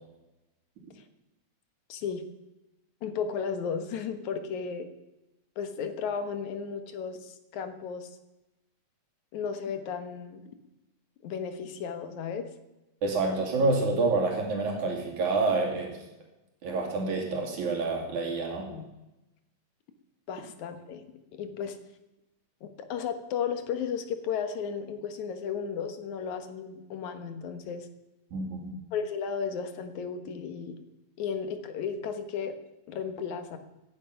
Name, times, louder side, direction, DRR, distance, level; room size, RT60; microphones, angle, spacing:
voice 1, 1.9-2.2 3.0-4.9 5.6-8.1 9.3-10.4 11.2-12.5 18.7-18.9 20.3-21.0 21.3-21.8 22.6-27.9 28.9-30.8 31.2-32.5 32.9-33.6, left 6 dB, 80° left, 8 dB, 2.8 m, -34 dB
voice 2, 13.0-16.0 16.6-18.7 28.3-28.8, right 3 dB, 80° right, 0 dB, 4.1 m, -28 dB
18.0 x 11.0 x 5.8 m, 0.98 s
omnidirectional pair, 3.3 m